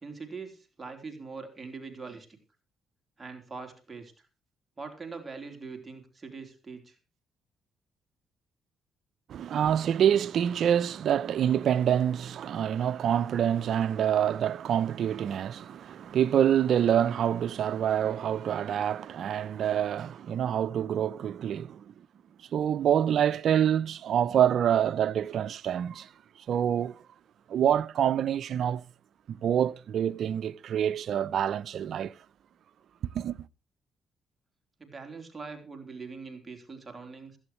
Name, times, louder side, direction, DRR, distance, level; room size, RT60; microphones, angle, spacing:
voice 1, 0.0-2.3 3.2-4.3 4.8-7.0 34.8-37.4, right 4 dB, 25° right, 3.8 m, -42 dB
voice 2, 9.3-21.9 22.5-26.1 26.5-27.0 27.5-28.8 29.3-32.1 33.1-33.4, right 9 dB, 65° right, 0.6 m, -26 dB
16.0 x 15.0 x 3.2 m
cardioid pair, 90°, 0 cm